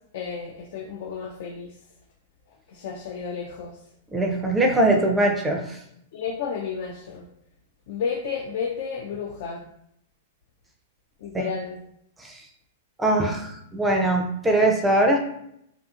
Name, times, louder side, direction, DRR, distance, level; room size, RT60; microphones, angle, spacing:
voice 1, 0.1-1.7 2.7-3.7 6.1-7.2 7.9-9.6 11.2-11.8, left 6 dB, 60° left, 3 dB, 0.3 m, -32 dB
voice 2, 4.1-5.8 11.3-11.5 12.2-12.4 13.0-15.2, right 1 dB, 10° right, 2 dB, 0.4 m, -21 dB
2.6 x 2.4 x 2.4 m, 0.76 s
hypercardioid pair, 115°, 0 cm